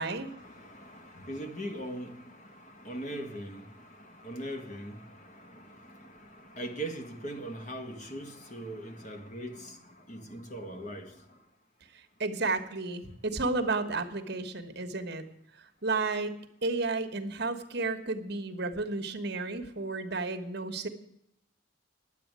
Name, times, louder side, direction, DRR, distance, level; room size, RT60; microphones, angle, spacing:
voice 1, 0.0-9.8 10.1-11.1, right 1 dB, 40° left, 6 dB, 1.6 m, -41 dB
voice 2, 12.2-15.2 15.8-20.9, right 3 dB, 60° right, 7 dB, 1.3 m, -32 dB
11.0 x 8.2 x 9.4 m, 0.75 s
head